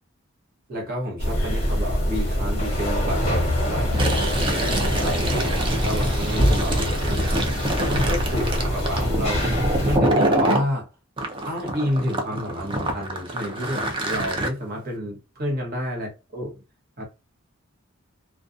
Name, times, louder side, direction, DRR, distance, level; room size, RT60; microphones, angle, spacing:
voice 1, 0.7-6.8 7.9-9.5 9.8-10.9 11.5-16.5 17.0-17.1, equal, 45° right, 0.9 m, -30 dB
sound 1, 1.2-10.0, equal, 30° left, 0.8 m, -24 dB
Fill (with liquid), 3.8-10.7 11.2-14.5, right 1 dB, 25° right, 0.4 m, -26 dB
2.4 x 2.2 x 2.5 m
head